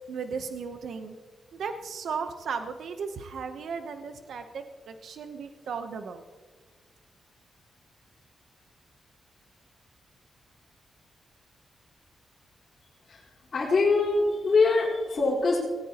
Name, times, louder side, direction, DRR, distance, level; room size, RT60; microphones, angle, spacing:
voice 1, 0.1-1.2 1.5-6.2, right 5 dB, 75° right, 7 dB, 0.8 m, -36 dB
voice 2, 13.5-15.6, left 3 dB, 45° left, -10 dB, 3.9 m, -23 dB
18.0 x 18.0 x 2.9 m, 1.4 s
wide cardioid pair, 140°, 0 cm